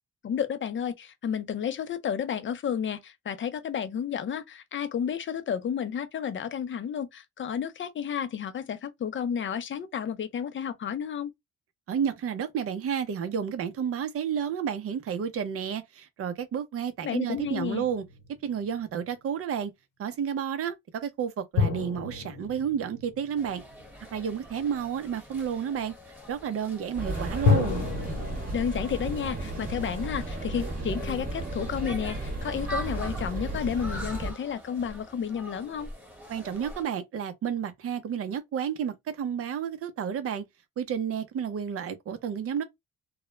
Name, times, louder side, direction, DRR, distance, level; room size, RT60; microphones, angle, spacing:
voice 1, 0.2-11.3 17.0-17.9 28.5-35.9, left 8 dB, 40° left, 0.5 m, -31 dB
voice 2, 11.9-18.0 18.4-19.7 20.0-23.6 24.1-25.9 26.3-27.9 36.3-40.4 40.8-42.6, right 8 dB, 50° right, 0.6 m, -31 dB
sound 1, 17.4-18.7 21.5-24.1 27.5-28.4, left 5 dB, 80° left, 0.9 m, -29 dB
sound 2, 23.3-36.8, right 1 dB, 5° right, 1.3 m, -44 dB
sound 3, 26.9-34.3, right 1 dB, 30° right, 1.0 m, -34 dB
2.3 x 2.1 x 3.0 m
cardioid pair, 115°, 29 cm